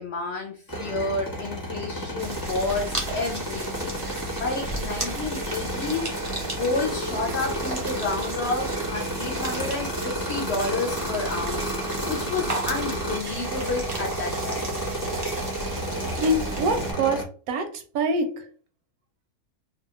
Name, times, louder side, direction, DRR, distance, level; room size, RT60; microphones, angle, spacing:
voice 1, 0.0-6.3 6.6-14.7, left 3 dB, 65° left, 0.7 m, -30 dB
sound 1, 0.7-17.2, right 1 dB, 20° left, 0.7 m, -31 dB
sound 2, 2.2-16.9, right 2 dB, 40° right, 0.4 m, -34 dB
voice 2, 16.0-18.5, right 1 dB, 80° right, 1.1 m, -25 dB
2.7 x 2.3 x 2.7 m
omnidirectional pair, 1.5 m